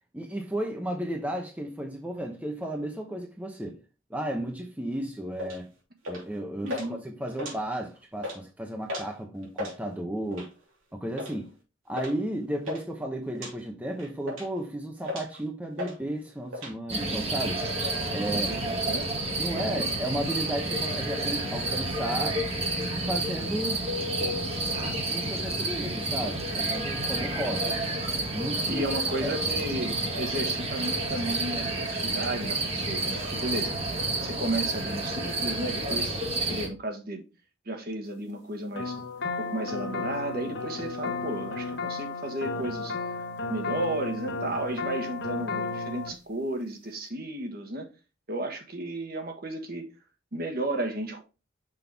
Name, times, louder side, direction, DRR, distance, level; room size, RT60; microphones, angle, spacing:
voice 1, 0.1-3.8 4.1-5.7 6.1-10.5 10.9-11.5 11.9-17.6 18.1-18.5 19.4-22.4 23.1-23.8 24.2-24.5 25.1-27.8 28.3-28.8 29.2-29.6, right 1 dB, 10° right, 0.8 m, -33 dB
sound 1, 5.4-5.6 6.0-6.3 6.7-6.9 7.3-7.9 8.2-8.4 8.9-9.1 9.4-9.8 10.3-10.6 11.2-11.4 12.0-12.1 12.4-12.8 13.3-13.5 14.0-14.6 15.0-15.4 15.8-16.7, left 1 dB, 80° right, 3.0 m, -36 dB
voice 2, 6.6-7.0 18.3-19.1 19.5-19.8 28.7-33.8 34.2-37.2 37.6-39.0 39.4-43.0 43.5-47.9 48.3-49.9 50.3-51.2, right 1 dB, 50° right, 1.4 m, -33 dB
sound 2, 16.9-36.7, right 2 dB, 30° right, 1.4 m, -30 dB
sound 3, 38.8-46.1, left 3 dB, 55° left, 1.0 m, -33 dB
6.1 x 5.4 x 3.4 m
head